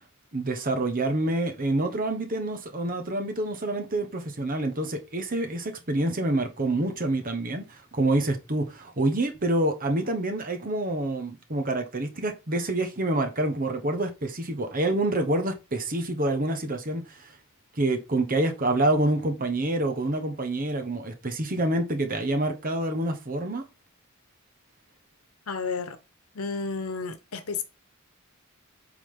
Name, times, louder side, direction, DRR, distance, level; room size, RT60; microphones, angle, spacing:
voice 1, 0.3-17.3 17.7-23.6, right 1 dB, 40° right, 1.2 m, -27 dB
voice 2, 25.5-26.0 26.3-27.6, left 4 dB, 80° left, 1.0 m, -31 dB
8.2 x 3.7 x 3.8 m
head